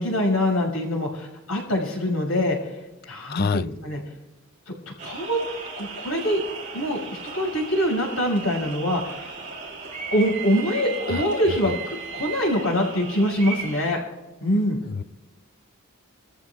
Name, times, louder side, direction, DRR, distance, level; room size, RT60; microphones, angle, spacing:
voice 1, 0.0-2.7 3.0-4.0 4.7-5.4 5.7-6.4 6.7-9.3 10.1-14.0 14.4-14.8, equal, 85° left, 5.8 m, -24 dB
voice 2, 3.3-3.6 11.1-11.2 15.0-15.1, left 5 dB, 45° left, 0.3 m, -25 dB
sound 1, 5.0-13.9, right 5 dB, 35° right, 3.7 m, -36 dB
26.0 x 14.5 x 2.4 m
head